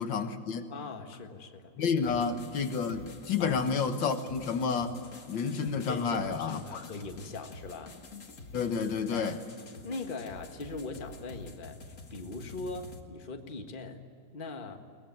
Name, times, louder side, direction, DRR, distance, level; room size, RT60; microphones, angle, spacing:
voice 1, 0.0-0.7 1.8-5.0 5.3-6.9 8.5-9.4, left 5 dB, 85° left, 7 dB, 2.1 m, -30 dB
voice 2, 0.7-1.7 2.1-2.2 3.4-3.6 5.9-7.9 9.1-9.4 9.8-14.0 14.3-14.8, left 3 dB, 30° left, 5 dB, 1.6 m, -41 dB
sound 1, 2.0-13.0, left 3 dB, 45° left, 2.1 m, -48 dB
22.5 x 19.5 x 9.4 m, 2.4 s
omnidirectional pair, 2.0 m